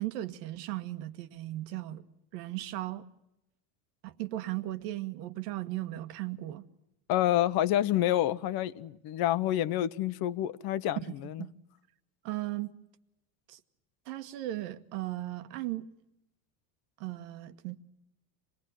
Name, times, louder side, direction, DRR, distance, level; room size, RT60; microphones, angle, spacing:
voice 1, 0.0-2.1 2.3-3.1 4.0-6.7 11.4-11.5 12.2-12.7 13.5-13.6 14.1-15.9 17.0-17.8, right 16 dB, 80° right, 1.7 m, -36 dB
voice 2, 7.1-11.4, left 13 dB, 50° left, 1.1 m, -28 dB
26.5 x 19.5 x 9.2 m
supercardioid pair, 135°, 47 cm